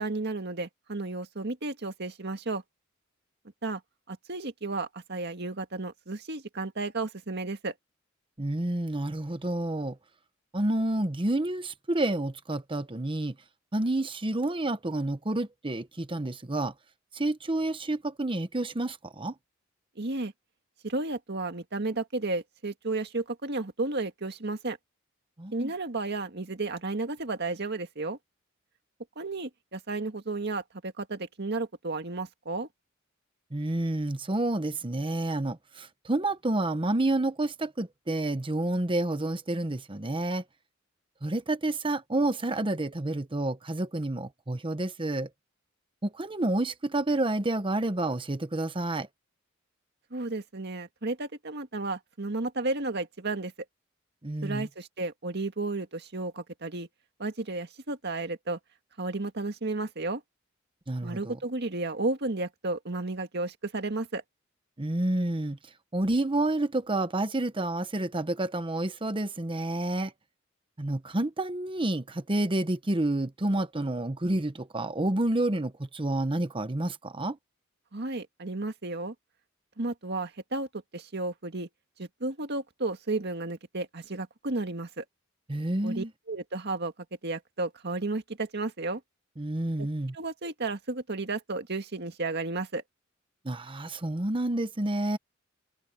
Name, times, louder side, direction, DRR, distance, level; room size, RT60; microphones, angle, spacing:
voice 1, 0.0-2.6 3.6-3.8 4.1-7.7 20.0-20.3 20.8-24.8 25.5-28.2 29.2-32.7 50.1-53.5 54.4-56.9 57.2-58.6 59.0-60.2 61.0-64.2 77.9-79.1 79.8-80.7 80.9-81.7 82.0-85.0 85.8-86.9 87.2-89.0 89.8-89.9 90.1-92.8, right 2 dB, 55° right, 1.9 m, -33 dB
voice 2, 8.4-10.0 10.5-13.4 13.7-16.7 17.1-19.3 25.4-25.7 33.5-40.4 41.2-45.3 46.0-49.1 54.2-54.7 60.9-61.4 64.8-65.6 65.9-70.1 70.8-77.4 85.5-86.1 89.4-90.1 93.4-95.2, right 1 dB, 25° right, 1.0 m, -29 dB
head